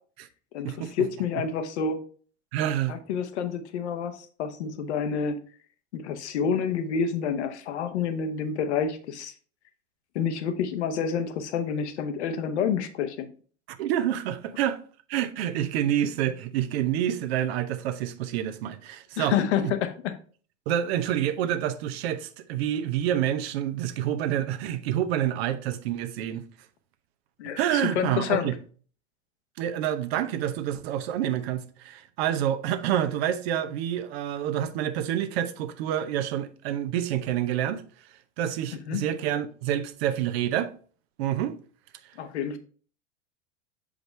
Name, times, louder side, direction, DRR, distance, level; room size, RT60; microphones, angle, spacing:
voice 1, 0.5-2.0 2.9-5.4 5.9-9.3 10.1-13.3 19.2-20.2 27.4-28.5 38.9-39.0 42.2-42.6, left 7 dB, 70° left, 1.0 m, -28 dB
voice 2, 2.5-3.0 13.7-14.8 15.1-19.7 20.7-26.4 27.6-28.5 29.6-37.8 38.4-40.7 41.2-41.6, right 11 dB, 60° right, 0.8 m, -28 dB
6.5 x 5.0 x 3.2 m
hypercardioid pair, 90°, 35 cm